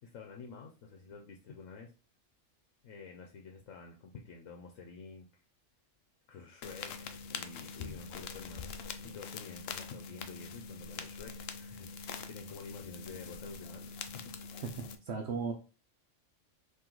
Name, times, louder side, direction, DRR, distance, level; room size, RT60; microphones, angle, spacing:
voice 1, 0.0-1.9 2.8-5.3 6.3-8.7 9.0-14.6, left 5 dB, 90° left, 2 dB, 1.1 m, -49 dB
sound 1, 6.6-15.0, left 5 dB, 65° left, 0.7 m, -44 dB
voice 2, 14.6-15.5, right 5 dB, 65° right, 4 dB, 0.9 m, -36 dB
4.5 x 3.0 x 3.8 m, 0.34 s
omnidirectional pair, 1.3 m